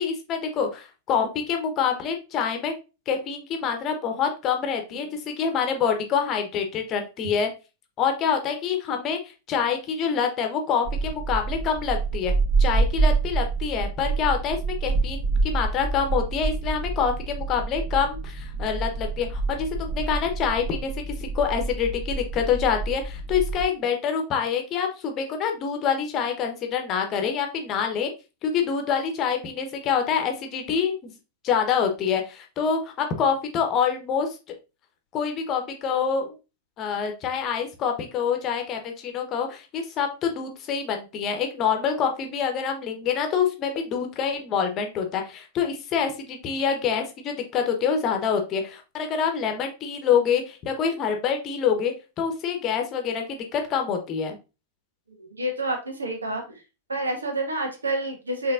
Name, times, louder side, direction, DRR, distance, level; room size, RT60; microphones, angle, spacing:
voice 1, 0.0-2.7 3.1-7.5 8.0-9.2 9.5-12.3 12.6-28.1 28.4-31.1 31.4-34.3 35.1-36.3 36.8-54.4, left 7 dB, 35° left, 4 dB, 1.0 m, -26 dB
sound 1, 10.8-23.7, right 3 dB, 50° right, 2.3 m, -27 dB
voice 2, 55.2-56.6 56.9-58.5, right 1 dB, 75° right, 3 dB, 1.2 m, -28 dB
5.3 x 3.3 x 2.6 m, 0.30 s
figure-of-eight pair, 90°, 0 cm